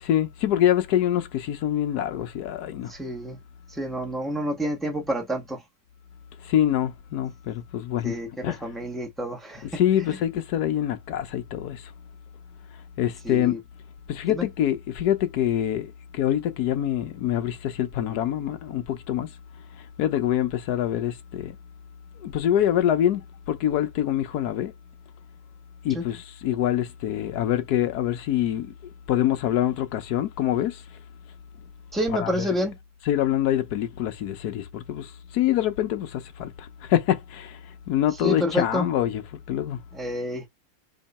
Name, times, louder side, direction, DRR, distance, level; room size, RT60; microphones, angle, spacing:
voice 1, 0.0-2.9 6.4-8.1 8.4-8.6 9.7-11.9 13.0-13.6 14.1-19.3 20.0-21.6 22.2-24.7 25.8-28.7 29.1-30.8 32.1-32.4 33.1-37.6 37.9-39.2 39.5-39.8, left 11 dB, 65° left, 1.2 m, -25 dB
voice 2, 2.9-3.4 3.7-5.6 8.0-9.8 13.2-13.6 14.2-14.5 25.9-26.0 31.9-32.8 38.2-38.9 39.9-40.5, equal, ahead, 0.9 m, -29 dB
3.6 x 3.2 x 4.2 m
omnidirectional pair, 2.0 m